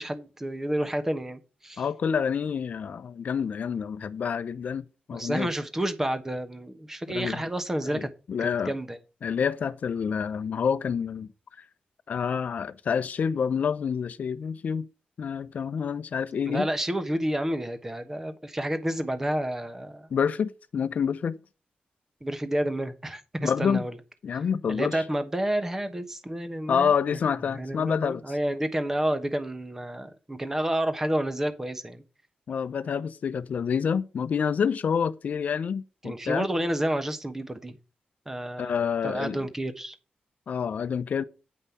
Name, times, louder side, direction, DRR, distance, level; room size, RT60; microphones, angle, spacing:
voice 1, 0.0-1.8 5.1-8.1 8.6-9.0 16.4-20.1 22.2-23.9 24.7-26.9 27.5-32.0 36.0-37.8 38.3-40.0, right 1 dB, 15° right, 1.1 m, -30 dB
voice 2, 1.8-5.5 7.1-7.4 7.8-8.7 9.2-11.3 12.1-14.9 15.2-16.7 20.1-21.4 23.4-23.8 24.2-25.0 26.7-28.3 32.5-36.5 38.6-39.4 40.5-41.2, left 7 dB, 60° left, 0.6 m, -28 dB
9.5 x 5.4 x 5.6 m
wide cardioid pair, 160°, 3 cm